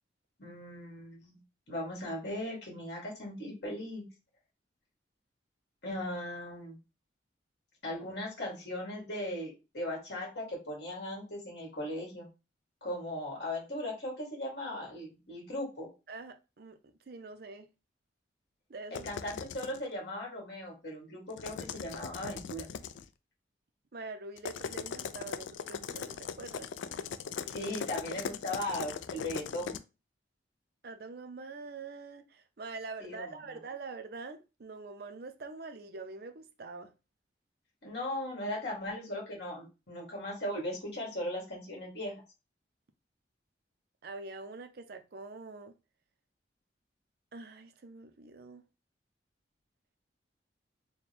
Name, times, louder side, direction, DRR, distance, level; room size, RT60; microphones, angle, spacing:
voice 1, 0.4-1.4 1.7-4.1 5.8-6.8 7.8-12.3 12.8-15.9 18.9-22.7 27.4-29.8 33.0-33.3 37.8-42.2, left 1 dB, 60° left, 2.0 m, -38 dB
voice 2, 16.1-17.7 18.7-19.1 23.9-26.7 30.8-36.9 44.0-45.7 47.3-48.6, right 3 dB, 60° right, 0.5 m, -45 dB
sound 1, 18.9-19.8 21.3-23.0 24.4-29.8, left 7 dB, 85° left, 0.3 m, -39 dB
4.2 x 2.2 x 3.3 m
head